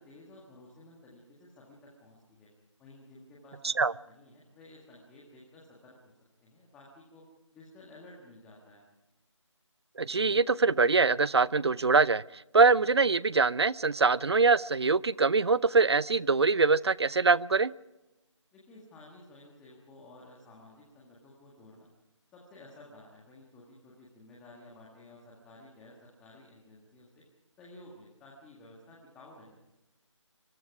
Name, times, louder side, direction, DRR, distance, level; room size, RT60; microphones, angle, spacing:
voice 1, 0.0-2.5 2.8-6.1 6.4-7.3 7.5-8.8 18.5-21.9 22.3-27.2 27.6-29.6, left 2 dB, 5° left, -3 dB, 1.7 m, -54 dB
voice 2, 10.0-12.2 12.5-17.7, right 4 dB, 55° right, 21 dB, 0.6 m, -23 dB
25.0 x 23.0 x 4.8 m, 1.0 s
figure-of-eight pair, 165°, 16 cm